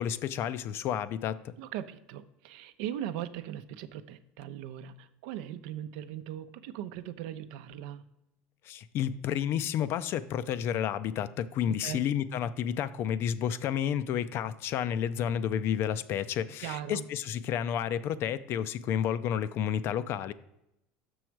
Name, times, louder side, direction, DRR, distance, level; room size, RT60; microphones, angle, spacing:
voice 1, 0.0-1.5 8.6-20.3, left 9 dB, 50° left, 15 dB, 0.4 m, -31 dB
voice 2, 1.6-8.0 11.7-12.0 16.6-17.1, right 11 dB, 75° right, 12 dB, 0.5 m, -39 dB
6.2 x 6.2 x 4.5 m, 0.84 s
supercardioid pair, 125°, 5 cm